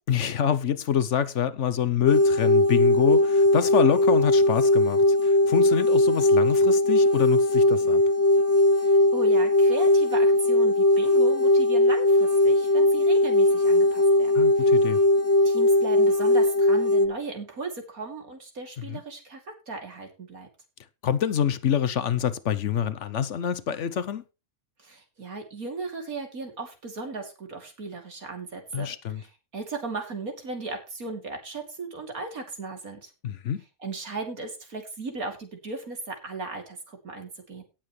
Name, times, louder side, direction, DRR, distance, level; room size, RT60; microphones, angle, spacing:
voice 1, 0.1-8.0 14.3-15.0 18.9-19.0 21.0-24.2 28.7-29.2 33.2-33.6, left 8 dB, 60° left, 1.0 m, -26 dB
sound 1, 2.0-17.1, left 1 dB, 15° left, 0.8 m, -20 dB
voice 2, 8.8-14.7 15.4-19.4 19.7-20.5 24.8-33.1 33.8-37.6, right 3 dB, 90° right, 3.3 m, -36 dB
17.5 x 7.4 x 3.2 m
omnidirectional pair, 1.5 m